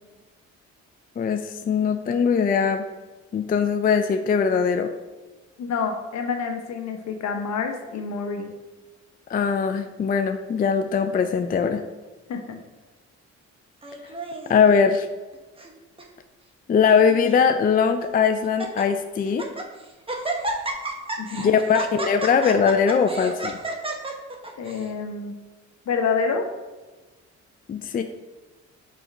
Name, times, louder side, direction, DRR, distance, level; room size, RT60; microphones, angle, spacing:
voice 1, 1.2-2.9 3.3-4.9 9.3-11.8 14.5-15.1 16.7-19.5 21.3-23.6 27.7-28.0, left 6 dB, 30° left, 7 dB, 0.4 m, -21 dB
voice 2, 5.6-8.5 12.3-12.6 21.2-21.5 24.6-25.3 25.9-26.5, left 5 dB, 65° left, 4 dB, 1.0 m, -27 dB
Laughter, 13.8-14.6 15.3-15.7 16.0-16.1 16.8-17.5 18.0-18.1 18.4-18.8 19.3-19.7 20.1-24.9, right 1 dB, 20° right, 1.0 m, -31 dB
5.3 x 4.4 x 4.8 m, 1.2 s
cardioid pair, 90°, 30 cm